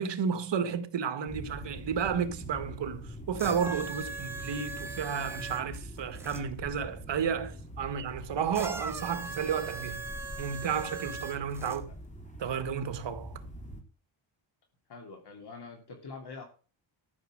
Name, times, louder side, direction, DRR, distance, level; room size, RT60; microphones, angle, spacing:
voice 1, 0.0-10.0 10.4-11.8 12.4-13.4, right 7 dB, 60° right, 1.9 m, -32 dB
sound 1, 1.3-13.8, right 1 dB, 15° left, 2.7 m, -44 dB
sound 2, 3.4-6.4 8.5-11.8 12.7-12.8, right 3 dB, 5° right, 1.9 m, -40 dB
voice 2, 11.6-12.0 14.9-16.5, left 4 dB, 55° left, 3.1 m, -45 dB
13.5 x 6.5 x 7.7 m
wide cardioid pair, 160°, 48 cm